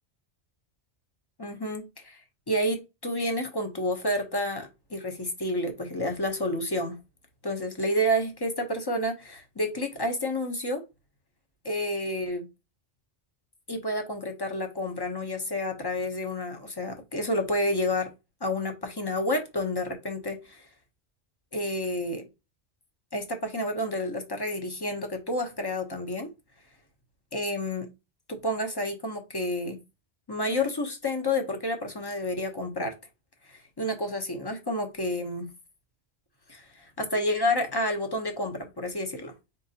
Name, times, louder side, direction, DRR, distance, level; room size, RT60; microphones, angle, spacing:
voice 1, 1.4-2.2 2.5-7.0 7.4-10.8 11.6-12.5 13.7-18.1 18.4-20.7 21.5-22.3 23.1-26.3 27.3-27.9 28.3-29.8 30.3-32.9 33.5-35.5 36.5-39.3, left 1 dB, 25° left, 0.8 m, -30 dB
4.1 x 3.8 x 2.8 m
omnidirectional pair, 1.1 m